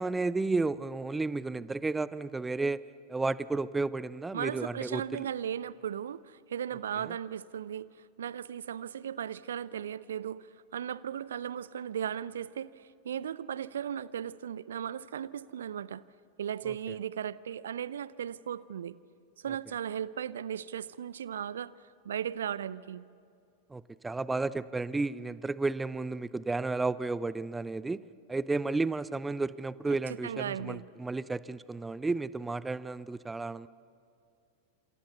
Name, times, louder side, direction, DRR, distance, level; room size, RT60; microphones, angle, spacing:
voice 1, 0.0-2.8 3.1-5.3 23.7-28.0 28.3-33.7, right 3 dB, 10° right, 0.6 m, -32 dB
voice 2, 4.3-7.9 8.2-16.0 16.4-19.0 19.4-21.7 22.0-23.0 30.2-30.8, right 9 dB, 65° right, 0.6 m, -36 dB
29.0 x 27.5 x 7.0 m
figure-of-eight pair, 90°, 0 cm